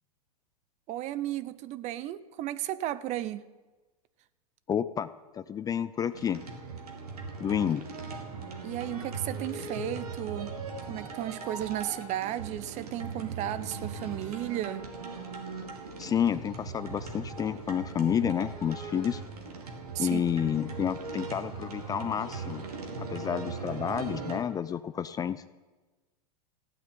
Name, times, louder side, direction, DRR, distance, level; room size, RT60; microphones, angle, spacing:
voice 1, 0.9-3.4 8.6-10.5 10.9-14.8 19.9-20.2, right 13 dB, 40° right, 0.8 m, -34 dB
voice 2, 4.7-6.4 7.4-7.9 16.0-19.2 20.0-22.6 23.1-25.4, left 8 dB, 20° left, 0.5 m, -30 dB
sound 1, 6.1-24.4, right 4 dB, 85° right, 3.1 m, -39 dB
15.5 x 9.1 x 9.0 m
hypercardioid pair, 115°, 19 cm